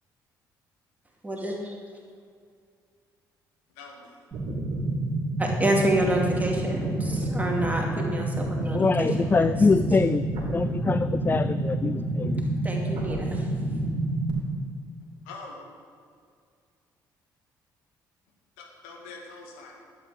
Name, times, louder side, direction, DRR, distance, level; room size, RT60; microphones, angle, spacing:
voice 1, 1.2-1.7 5.4-9.5 12.6-13.5, right 1 dB, 15° right, -1 dB, 2.6 m, -28 dB
voice 2, 3.8-4.2 15.3-15.7 18.6-19.7, left 3 dB, 70° left, -1 dB, 1.9 m, -43 dB
sound 1, 4.3-14.3, right 2 dB, 50° right, 2.6 m, -28 dB
voice 3, 8.7-10.2 10.5-12.4, left 4 dB, 20° left, 12 dB, 0.3 m, -24 dB
11.5 x 8.3 x 5.0 m, 2.2 s
figure-of-eight pair, 45°, 10 cm